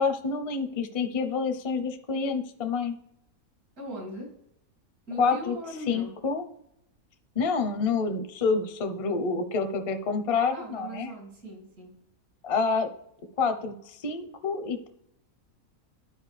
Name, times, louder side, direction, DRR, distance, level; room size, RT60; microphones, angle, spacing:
voice 1, 0.0-3.0 5.2-5.6 5.9-6.5 7.4-11.1 12.4-12.9 13.4-14.9, left 4 dB, 40° left, 7 dB, 0.5 m, -28 dB
voice 2, 3.8-4.3 5.1-6.1 10.5-11.9, equal, 85° right, -1 dB, 3.2 m, -39 dB
11.5 x 4.8 x 3.3 m, 0.75 s
omnidirectional pair, 1.5 m